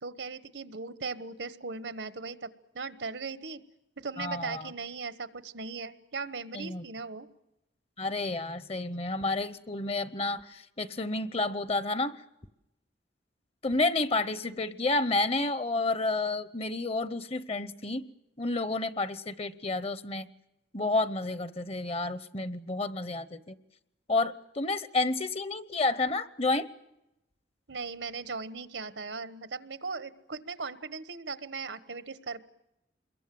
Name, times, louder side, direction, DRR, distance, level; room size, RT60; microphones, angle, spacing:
voice 1, 0.0-3.6 4.0-7.3 27.7-32.4, right 4 dB, 80° right, 14 dB, 1.2 m, -38 dB
voice 2, 4.2-4.7 6.5-6.8 8.0-12.2 13.6-18.0 18.4-20.3 20.7-23.5 24.1-26.7, left 2 dB, 35° left, 15 dB, 0.9 m, -30 dB
26.5 x 22.0 x 7.7 m, 0.90 s
head